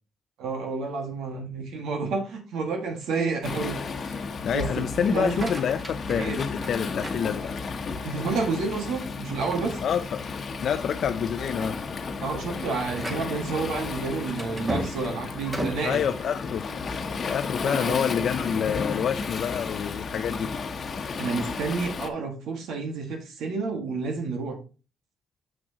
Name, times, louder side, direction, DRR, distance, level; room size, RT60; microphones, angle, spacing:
voice 1, 0.4-3.8 4.0-4.2 4.5-5.5 6.1-6.4 8.0-9.8 12.2-16.0 17.6-18.0 21.2-24.6, right 4 dB, 80° right, 1.8 m, -30 dB
Waves surf, 3.4-22.1, left 4 dB, 45° left, 1.0 m, -33 dB
voice 2, 4.4-7.5 9.8-10.2 10.6-11.8 15.8-16.7 17.3-20.5, left 8 dB, 65° left, 0.5 m, -27 dB
sound 1, 5.2-7.9 8.4-8.9 9.3-9.4 9.8-10.0 10.7-10.9 11.3-17.2, right 1 dB, 25° right, 2.0 m, -38 dB
7.5 x 6.2 x 2.9 m
cardioid pair, 90°, 0 cm